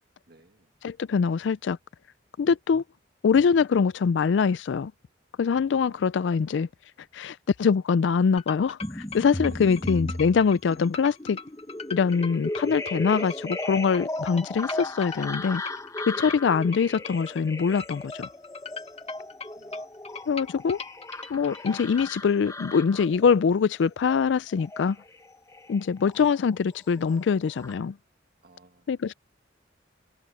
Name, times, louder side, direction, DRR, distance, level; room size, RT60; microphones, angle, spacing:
voice 1, 0.3-0.7 5.8-6.1 9.4-9.9 16.2-16.4 19.0-19.2 19.6-19.9 28.4-29.0, right 2 dB, 55° right, 1.7 m, -56 dB
voice 2, 0.8-1.8 2.4-2.8 3.2-4.9 5.4-6.7 7.1-11.4 11.9-15.6 16.1-18.3 20.3-20.8 21.3-25.0 25.7-28.0 28.9-29.1, left 6 dB, 70° left, 0.4 m, -23 dB
sound 1, 8.4-22.1, left 5 dB, 35° left, 1.3 m, -40 dB
sound 2, 8.8-26.6 26.9-27.7, left 1 dB, 15° left, 1.0 m, -36 dB
open air
head